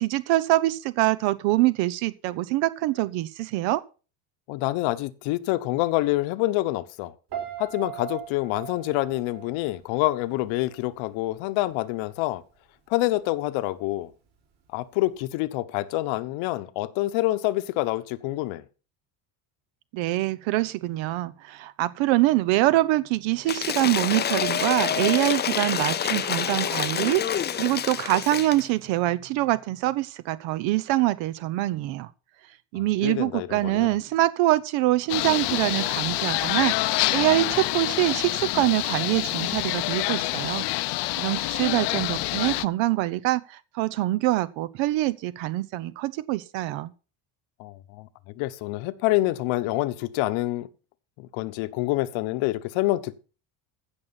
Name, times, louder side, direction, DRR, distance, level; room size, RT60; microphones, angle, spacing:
voice 1, 0.0-3.8 19.9-32.1 32.7-40.6 41.2-46.9, right 17 dB, 80° right, 0.9 m, -24 dB
voice 2, 4.5-7.1 7.6-12.4 12.9-14.1 14.7-18.6 32.7-34.0 47.6-48.1 48.4-50.7 51.2-53.1, left 17 dB, 80° left, 1.1 m, -27 dB
Piano, 7.3-10.4 10.7-11.1, right 11 dB, 60° right, 6.2 m, -38 dB
Cheering / Applause / Crowd, 23.5-28.7, left 9 dB, 25° left, 0.5 m, -27 dB
sound 1, 35.1-42.7, left 19 dB, 65° left, 0.7 m, -27 dB
15.5 x 6.4 x 5.8 m
cardioid pair, 140°, 45 cm